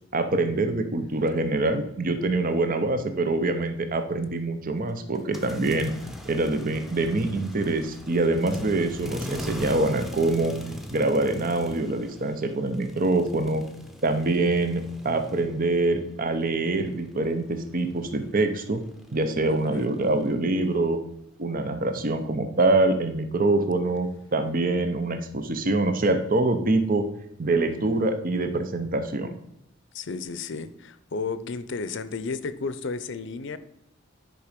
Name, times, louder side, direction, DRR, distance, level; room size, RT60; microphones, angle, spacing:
voice 1, 0.1-5.9 6.2-10.5 10.9-13.6 14.0-18.8 19.1-21.0 21.4-27.1 27.4-29.3, right 2 dB, 45° right, 8 dB, 0.8 m, -25 dB
sound 1, 5.2-16.0 16.2-20.4, left 1 dB, ahead, 0.9 m, -41 dB
voice 2, 29.9-33.6, left 4 dB, 65° left, 13 dB, 0.6 m, -33 dB
10.0 x 5.1 x 5.1 m, 0.79 s
head